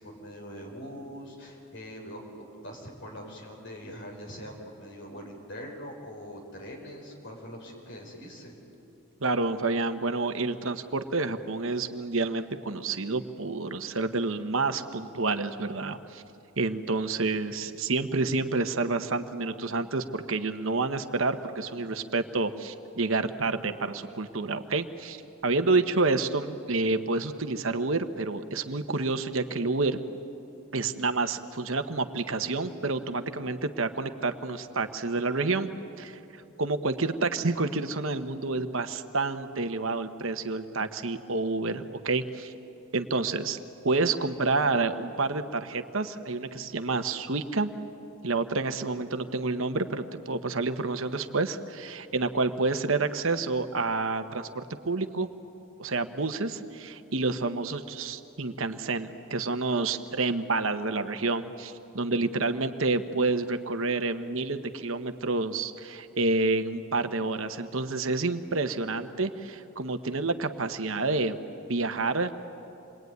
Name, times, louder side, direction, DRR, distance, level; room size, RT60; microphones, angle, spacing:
voice 1, 0.0-8.6, equal, 60° left, 0 dB, 5.7 m, -43 dB
voice 2, 9.2-16.2 16.6-30.0 30.7-35.7 36.0-36.2 36.6-42.5 42.9-43.6 43.8-47.7 48.2-55.3 55.8-71.4 71.7-72.3, right 3 dB, 65° right, 8 dB, 1.2 m, -29 dB
27.5 x 22.0 x 9.5 m, 2.8 s
head